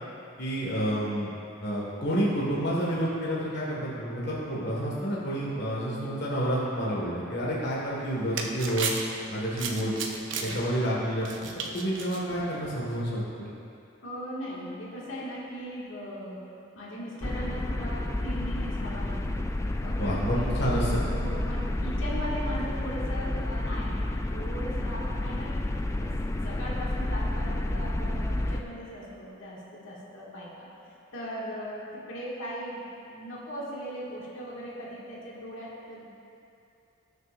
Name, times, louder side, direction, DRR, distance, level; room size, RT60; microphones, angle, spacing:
voice 1, 0.4-1.3 1.6-8.9 9.3-9.9 10.4-11.3 11.6-13.5 20.0-21.0, equal, 55° left, -6 dB, 1.8 m, -29 dB
sound 1, 7.8-13.0, right 4 dB, 65° right, 0.8 m, -36 dB
voice 2, 14.0-16.5 16.7-19.4 19.8-20.5 21.1-30.7 31.1-36.0, equal, 80° left, -6 dB, 2.1 m, -39 dB
sound 2, 17.2-28.6, left 1 dB, 15° left, 0.3 m, -30 dB
18.0 x 6.9 x 2.6 m, 2.7 s
head